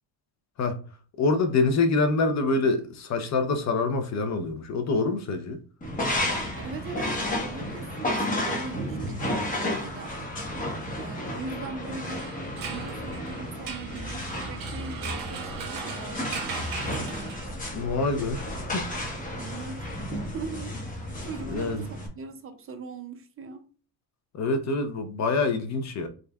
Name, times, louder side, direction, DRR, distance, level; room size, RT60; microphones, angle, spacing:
voice 1, 1.2-5.6 17.7-18.4 18.7-18.9 21.5-21.9 24.3-26.1, left 3 dB, 40° left, 0.8 m, -25 dB
sound 1, 5.8-22.1, left 1 dB, 20° left, 1.1 m, -32 dB
voice 2, 6.6-10.1 10.9-12.3 12.6-16.8 19.4-20.8 21.2-23.7, right 4 dB, 35° right, 0.6 m, -40 dB
sound 2, 12.1-17.8, right 6 dB, 55° right, 1.2 m, -39 dB
3.8 x 3.6 x 2.3 m
cardioid pair, 120°, 41 cm